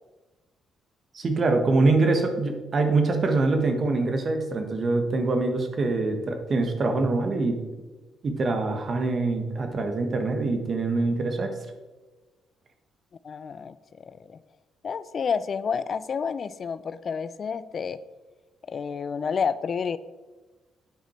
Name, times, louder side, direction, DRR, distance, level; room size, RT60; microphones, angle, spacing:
voice 1, 1.1-7.6 8.2-11.5, right 3 dB, 45° right, 5 dB, 1.2 m, -24 dB
voice 2, 13.2-14.4 14.8-18.0 18.7-20.0, left 6 dB, 50° left, 15 dB, 0.3 m, -30 dB
9.1 x 5.1 x 4.3 m, 1.2 s
cardioid pair, 90°, 0 cm